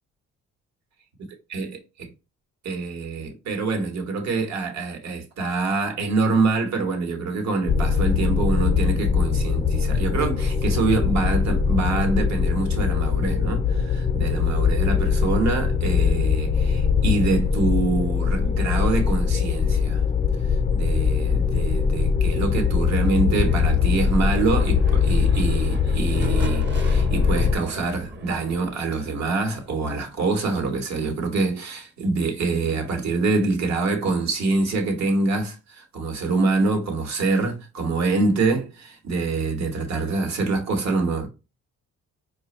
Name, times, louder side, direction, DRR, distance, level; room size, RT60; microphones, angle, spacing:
voice 1, 2.6-20.0 20.5-41.3, right 3 dB, 65° right, 1.2 m, -25 dB
sound 1, 7.7-27.6, left 6 dB, 25° left, 0.4 m, -22 dB
sound 2, 23.2-31.0, right 1 dB, 40° right, 1.0 m, -40 dB
5.0 x 2.3 x 2.9 m
cardioid pair, 90°, 30 cm